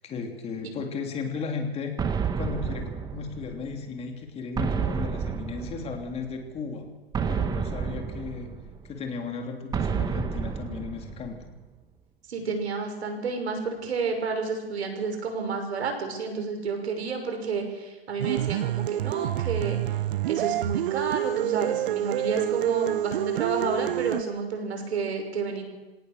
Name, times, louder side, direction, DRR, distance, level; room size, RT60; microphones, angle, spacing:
voice 1, 0.0-2.0 2.4-6.9 7.3-8.5 8.8-11.4, left 5 dB, 20° left, 3 dB, 3.2 m, -35 dB
sound 1, 2.0-3.8 4.6-6.3 7.1-8.9 9.7-11.5, right 6 dB, 10° right, 1.1 m, -30 dB
voice 2, 12.3-19.8 20.3-25.6, right 4 dB, 80° right, 5 dB, 6.3 m, -30 dB
sound 2, 18.2-24.2, right 13 dB, 55° right, 0.7 m, -28 dB
26.0 x 18.0 x 6.8 m, 1.2 s
hypercardioid pair, 145°, 32 cm